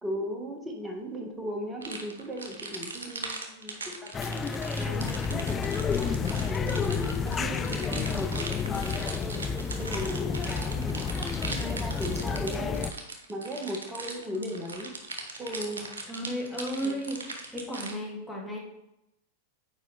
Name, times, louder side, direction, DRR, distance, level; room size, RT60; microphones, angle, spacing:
voice 1, 0.0-4.4 4.8-9.4 9.8-11.0 11.5-12.7 13.3-14.9 15.4-15.9 16.8-17.0, equal, 15° right, 2 dB, 1.5 m, -37 dB
sound 1, 1.8-18.0, right 3 dB, 80° right, 1.2 m, -39 dB
sound 2, 4.1-12.9, left 6 dB, 25° left, 0.4 m, -30 dB
voice 2, 16.0-18.6, equal, 5° left, -3 dB, 2.0 m, -34 dB
7.6 x 4.8 x 3.4 m, 0.87 s
hypercardioid pair, 100°, 0 cm